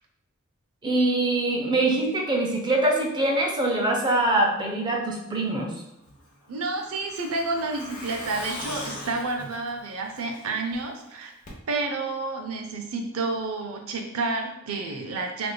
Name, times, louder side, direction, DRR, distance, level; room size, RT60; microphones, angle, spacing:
voice 1, 0.8-5.7, right 2 dB, 20° right, 1 dB, 0.5 m, -23 dB
Truck, 6.1-10.7 11.0-11.1 11.5-11.6, left 1 dB, 40° left, 0.9 m, -40 dB
voice 2, 6.5-11.3 11.7-15.5, right 3 dB, 90° right, 3 dB, 0.6 m, -30 dB
3.5 x 3.3 x 2.2 m, 0.90 s
head